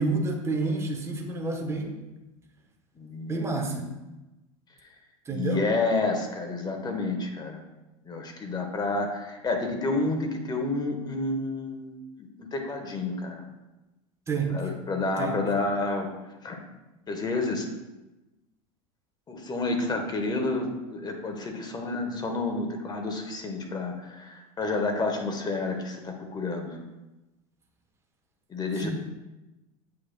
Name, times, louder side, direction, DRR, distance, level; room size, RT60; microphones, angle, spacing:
voice 1, 0.0-2.0 3.3-3.9 5.3-5.6 14.3-14.6 15.2-15.4 28.8-28.9, right 3 dB, 15° right, 2 dB, 1.0 m, -29 dB
voice 2, 3.0-3.9 5.3-7.6 8.0-13.3 14.5-16.1 16.4-16.6 17.1-17.6 19.3-26.8 28.5-28.9, left 3 dB, 25° left, 3 dB, 1.2 m, -30 dB
8.4 x 5.0 x 2.2 m, 1.0 s
hypercardioid pair, 90°, 18 cm